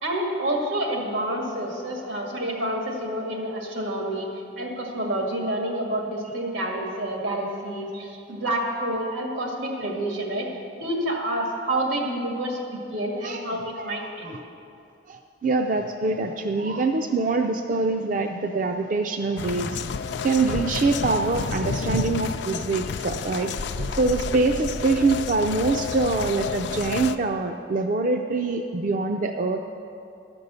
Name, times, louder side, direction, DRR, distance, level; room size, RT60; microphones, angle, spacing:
voice 1, 0.0-4.3 4.6-10.5 10.8-14.4 24.8-24.9, right 1 dB, 85° right, 0 dB, 1.9 m, -28 dB
voice 2, 13.2-14.4 15.1-19.8 20.2-29.6, right 3 dB, 45° right, 4 dB, 0.4 m, -25 dB
sound 1, 19.4-27.2, left 5 dB, 65° left, 0.4 m, -30 dB
12.5 x 5.3 x 8.1 m, 2.6 s
head